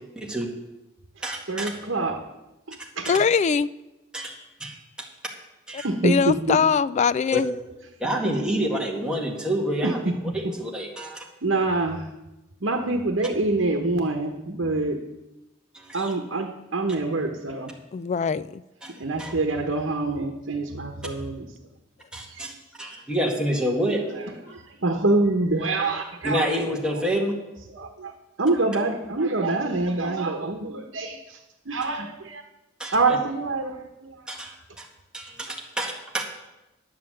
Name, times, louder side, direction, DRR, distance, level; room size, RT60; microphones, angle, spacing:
voice 1, 0.2-0.5 1.2-1.7 2.8-3.2 4.1-4.3 4.6-4.7 5.7-5.9 7.3-7.4 8.0-10.0 10.3-11.2 15.7-16.1 18.8-18.9 19.2-19.3 22.1-22.5 22.8-24.0 26.2-27.3 32.8-33.2 34.3-34.9 35.1-36.2, equal, 5° right, -2 dB, 1.9 m, -28 dB
voice 2, 1.5-2.2 2.7-3.1 5.8-6.6 9.8-9.9 11.4-12.0 12.6-15.0 15.9-17.7 19.0-21.5 22.3-22.5 24.2-26.6 27.7-28.1 28.4-31.4 31.6-32.4 32.9-34.2, right 2 dB, 75° right, 3 dB, 1.1 m, -26 dB
voice 3, 3.1-3.7 5.7-7.5 17.9-18.6, left 6 dB, 35° left, 17 dB, 0.3 m, -22 dB
10.5 x 7.6 x 7.5 m, 0.99 s
head